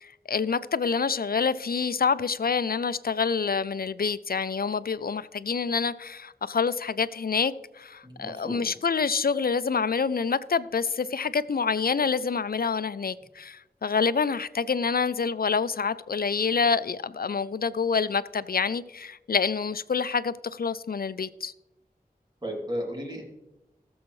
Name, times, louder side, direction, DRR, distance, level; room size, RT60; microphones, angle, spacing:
voice 1, 0.0-21.5, left 5 dB, 70° left, 0.4 m, -27 dB
voice 2, 8.0-8.7 22.4-23.2, equal, 25° right, 2.8 m, -34 dB
18.5 x 7.1 x 3.2 m
wide cardioid pair, 50°, 16 cm